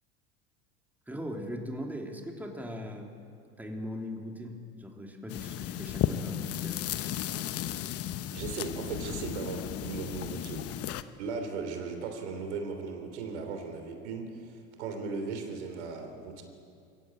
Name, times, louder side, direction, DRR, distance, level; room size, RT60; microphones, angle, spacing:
voice 1, 1.1-3.1 3.6-6.8, equal, 5° right, 1 dB, 3.1 m, -39 dB
sound 1, 5.3-11.0, left 11 dB, 45° left, 1.0 m, -34 dB
voice 2, 8.3-10.7 11.2-16.4, right 4 dB, 80° right, 5 dB, 3.3 m, -37 dB
22.5 x 16.5 x 8.8 m, 2.3 s
hypercardioid pair, 90°, 34 cm